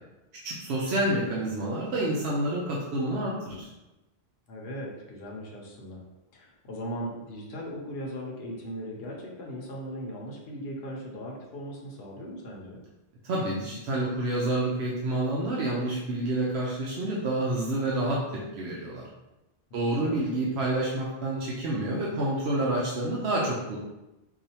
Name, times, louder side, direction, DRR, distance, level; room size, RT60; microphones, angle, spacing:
voice 1, 0.4-3.7 13.2-19.0 19.7-23.8, right 1 dB, 85° right, -4 dB, 0.9 m, -28 dB
voice 2, 4.5-6.0 6.3-12.8 19.9-20.2, equal, 70° left, -2 dB, 1.0 m, -38 dB
4.7 x 2.4 x 2.8 m, 0.98 s
omnidirectional pair, 1.1 m